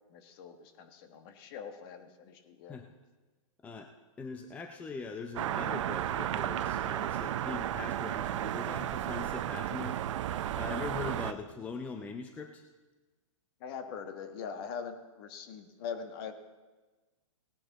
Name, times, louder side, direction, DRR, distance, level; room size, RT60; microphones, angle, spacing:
voice 1, 0.1-2.8 13.6-16.3, left 6 dB, 40° left, 8 dB, 1.4 m, -42 dB
voice 2, 4.2-10.0 10.5-12.6, left 4 dB, 10° left, 5 dB, 0.5 m, -41 dB
sound 1, 5.4-11.3, right 11 dB, 60° right, 0.6 m, -33 dB
18.0 x 10.0 x 4.0 m, 1.2 s
hypercardioid pair, 145°, 18 cm